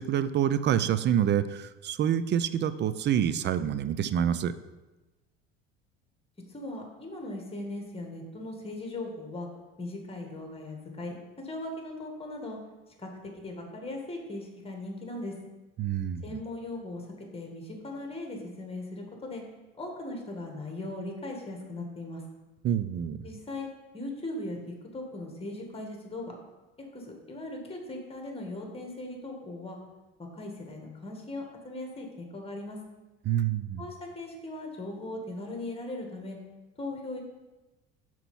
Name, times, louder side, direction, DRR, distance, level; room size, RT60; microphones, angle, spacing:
voice 1, 0.0-4.5 15.8-16.2 22.6-23.2 33.3-33.8, right 9 dB, 35° right, 14 dB, 0.4 m, -27 dB
voice 2, 6.5-9.5 9.8-12.6 13.0-15.3 16.2-19.4 19.8-22.2 23.2-23.7 23.9-26.4 26.9-29.8 30.2-32.8 33.8-36.4 36.8-37.2, left 2 dB, 20° left, 2 dB, 1.8 m, -39 dB
5.9 x 4.5 x 5.4 m, 1.1 s
hypercardioid pair, 75°, 32 cm